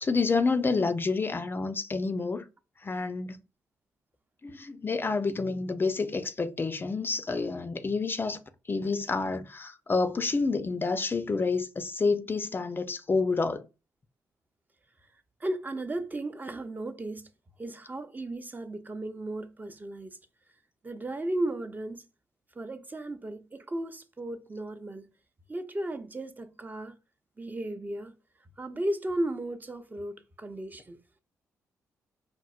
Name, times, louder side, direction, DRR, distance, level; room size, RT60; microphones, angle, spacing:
voice 1, 0.0-2.5 2.8-3.4 4.4-8.4 8.7-13.7, left 4 dB, 30° left, 0.4 m, -28 dB
voice 2, 15.4-17.3 17.6-20.2 20.8-22.0 22.6-25.1 25.5-26.9 27.4-28.1 28.6-31.0, right 1 dB, 25° right, 0.5 m, -35 dB
4.4 x 2.0 x 2.3 m
supercardioid pair, 50°, 7 cm